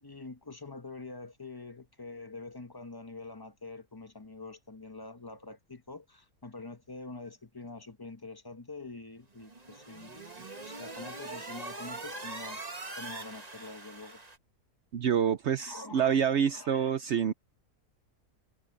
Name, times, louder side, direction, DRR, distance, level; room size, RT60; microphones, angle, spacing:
voice 1, 0.0-14.2 15.6-17.2, left 3 dB, 15° left, 1.0 m, -46 dB
sound 1, 9.4-14.4, right 3 dB, 25° right, 1.7 m, -42 dB
voice 2, 14.9-17.3, right 8 dB, 60° right, 0.8 m, -27 dB
omnidirectional pair, 1.7 m